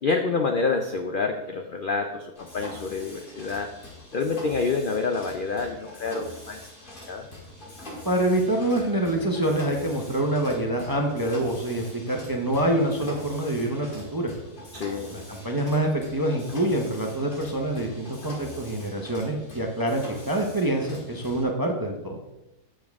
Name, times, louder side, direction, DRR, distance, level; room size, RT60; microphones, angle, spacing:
voice 1, 0.0-3.7 4.1-6.6 7.1-7.3 14.7-15.1, left 4 dB, 65° left, 5 dB, 0.5 m, -27 dB
Mechanisms, 2.4-21.4, left 1 dB, 35° left, 1.8 m, -43 dB
voice 2, 8.0-14.3 15.1-22.2, right 1 dB, 20° right, 1 dB, 0.6 m, -26 dB
7.6 x 7.0 x 3.5 m, 0.93 s
omnidirectional pair, 1.6 m